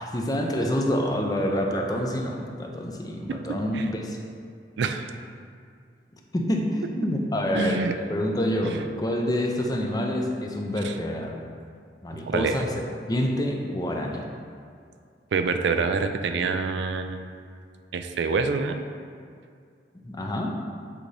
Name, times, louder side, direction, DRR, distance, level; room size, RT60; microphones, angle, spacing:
voice 1, 0.0-4.2 6.3-11.4 12.0-12.7 13.1-14.2 20.0-20.5, left 1 dB, 20° left, 1 dB, 0.6 m, -27 dB
voice 2, 3.3-3.9 4.8-5.1 7.5-7.9 8.6-8.8 10.8-11.0 12.3-12.6 15.3-17.3 17.9-18.9, right 4 dB, 75° right, 7 dB, 0.4 m, -27 dB
7.6 x 4.0 x 3.3 m, 2.3 s
head